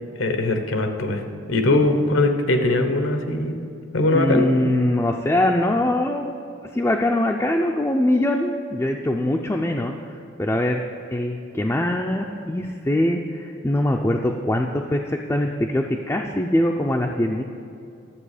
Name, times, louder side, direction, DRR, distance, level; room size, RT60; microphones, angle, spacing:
voice 1, 0.2-1.2 1.5-3.6 3.9-4.5, left 2 dB, 90° left, 6 dB, 1.0 m, -21 dB
voice 2, 4.1-6.3 6.7-10.8 11.1-17.4, left 1 dB, 15° left, 0 dB, 0.3 m, -22 dB
12.0 x 7.4 x 4.9 m, 2.6 s
head